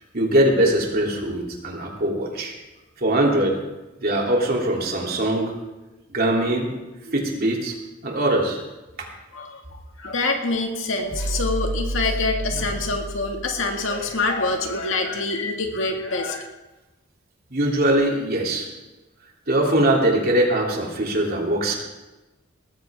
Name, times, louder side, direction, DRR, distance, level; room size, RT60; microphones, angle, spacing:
voice 1, 0.1-2.5 3.0-3.6 4.0-5.5 6.1-6.7 7.0-7.7 8.0-8.6 9.0-9.1 17.5-18.7 19.5-21.8, right 1 dB, 50° right, -1 dB, 3.1 m, -21 dB
voice 2, 10.0-16.5, left 3 dB, 75° left, 3 dB, 2.1 m, -25 dB
sound 1, 11.0-14.2, right 1 dB, 65° right, 2.4 m, -30 dB
20.0 x 14.0 x 3.6 m, 1.1 s
head